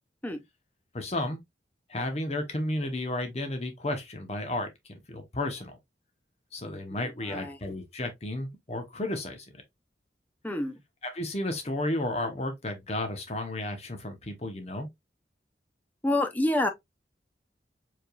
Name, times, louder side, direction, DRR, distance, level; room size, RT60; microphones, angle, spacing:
voice 1, 0.9-1.4 1.9-5.8 6.5-9.4 11.0-14.9, left 1 dB, 35° left, 1.0 m, -33 dB
voice 2, 7.3-7.6 10.4-10.8 16.0-16.7, left 1 dB, 10° left, 0.6 m, -27 dB
4.7 x 3.5 x 2.3 m
head